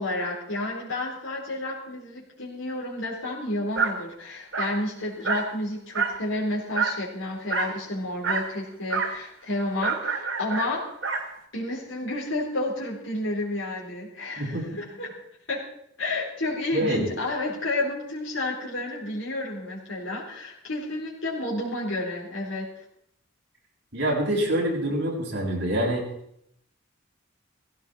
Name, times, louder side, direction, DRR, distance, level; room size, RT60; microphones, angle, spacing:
voice 1, 0.0-10.9 11.5-15.1 15.5-15.6 16.0-22.7, left 2 dB, 75° left, -5 dB, 4.2 m, -31 dB
Dog, 3.8-4.0 4.5-4.8 5.2-5.5 5.9-6.2 6.7-7.0 7.5-7.8 8.2-8.5 8.9-9.2 9.8-11.3, right 5 dB, 80° right, 2.2 m, -27 dB
voice 2, 14.4-14.8 16.7-17.1 23.9-26.0, right 1 dB, 60° right, -2 dB, 6.9 m, -26 dB
17.5 x 15.5 x 4.4 m, 0.72 s
head